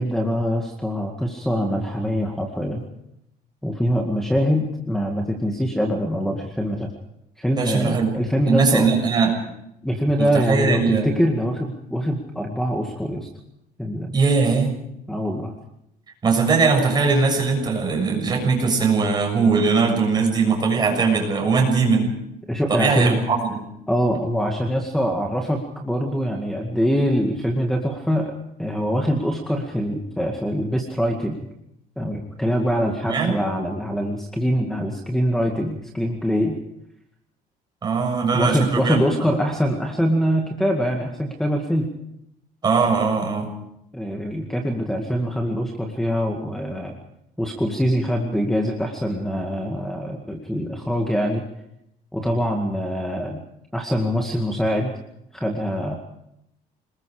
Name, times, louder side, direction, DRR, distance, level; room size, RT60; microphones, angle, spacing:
voice 1, 0.0-2.8 3.6-6.9 7.4-8.9 9.8-13.3 13.8-14.1 15.1-15.5 22.5-23.2 23.9-28.3 28.6-31.4 32.0-36.6 38.3-41.9 43.9-47.0 47.4-51.4 52.1-53.4 53.7-54.9 55.3-55.9, equal, 5° left, 2 dB, 2.0 m, -24 dB
voice 2, 7.5-8.1 8.5-9.3 10.2-11.2 14.1-14.8 16.2-22.1 22.7-23.6 33.1-33.3 37.8-39.0 42.6-43.5, right 4 dB, 25° right, 2 dB, 6.8 m, -20 dB
28.0 x 20.5 x 5.0 m, 0.79 s
cardioid pair, 150°, 16 cm